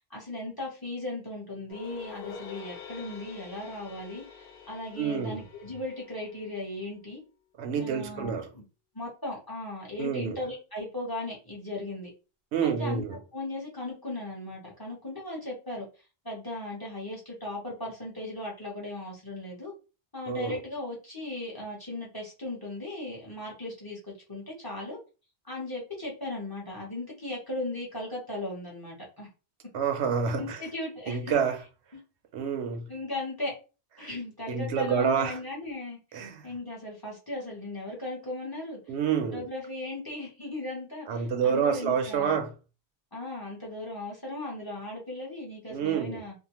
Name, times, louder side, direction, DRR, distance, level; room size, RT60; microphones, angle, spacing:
voice 1, 0.0-7.2 7.8-8.6 8.9-12.1 12.6-13.1 13.3-15.9 16.2-19.7 20.1-24.0 24.3-25.0 25.5-29.3 30.4-31.3 31.9-32.0 32.9-33.5 34.0-38.8 39.2-42.4 43.1-46.3, left 2 dB, 20° left, 0.9 m, -37 dB
sound 1, 1.7-6.9, left 6 dB, 70° left, 0.9 m, -47 dB
voice 2, 5.0-5.4 7.6-8.4 10.0-10.4 12.5-13.2 20.3-20.6 29.7-30.6 31.1-31.6 32.3-32.9 34.0-34.1 34.5-35.4 36.1-36.5 38.9-39.4 41.1-42.5 45.7-46.2, right 6 dB, 85° right, 0.9 m, -28 dB
2.7 x 2.1 x 2.9 m
omnidirectional pair, 1.1 m